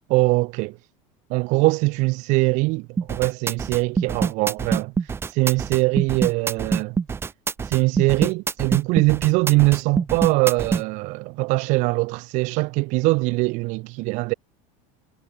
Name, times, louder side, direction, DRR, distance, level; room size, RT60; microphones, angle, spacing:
voice 1, 0.1-0.8 1.3-4.9 5.3-7.0 7.7-14.3, right 25 dB, 45° right, 6.1 m, -22 dB
sound 1, 3.0-10.8, right 5 dB, 15° right, 5.3 m, -25 dB
cardioid pair, 180°, 17 cm